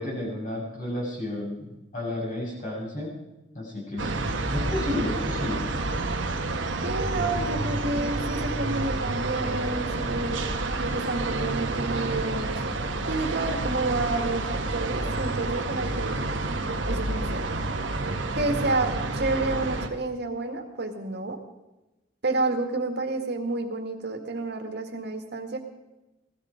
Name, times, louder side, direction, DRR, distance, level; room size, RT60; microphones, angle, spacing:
voice 1, 0.0-3.1 3.5-4.1 4.5-5.7, left 1 dB, 45° left, -3 dB, 6.8 m, -32 dB
sound 1, 4.0-19.9, right 2 dB, 80° right, 1.5 m, -29 dB
voice 2, 6.8-10.5 10.9-12.6 13.1-16.3 16.9-17.5 18.3-21.4 22.2-25.6, right 2 dB, 60° right, 4 dB, 2.1 m, -30 dB
18.0 x 13.5 x 5.1 m, 1.0 s
head